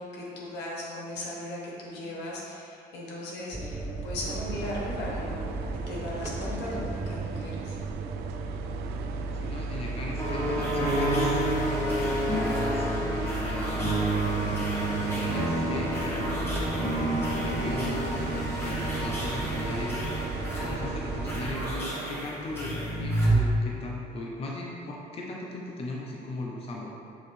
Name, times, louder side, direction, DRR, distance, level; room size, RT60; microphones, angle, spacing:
voice 1, 0.0-5.4 5.7-7.8, left 1 dB, 85° left, -4 dB, 1.4 m, -37 dB
sound 1, 3.5-21.7, right 2 dB, 10° right, 0.5 m, -35 dB
sound 2, 4.3-22.3, right 8 dB, 75° right, 0.4 m, -42 dB
voice 2, 9.3-13.9 15.2-20.2 20.6-26.9, left 2 dB, 35° left, -2 dB, 0.8 m, -38 dB
sound 3, 10.2-23.3, right 1 dB, 15° left, 1.4 m, -30 dB
7.1 x 3.1 x 4.3 m, 2.5 s
cardioid pair, 110°, 17 cm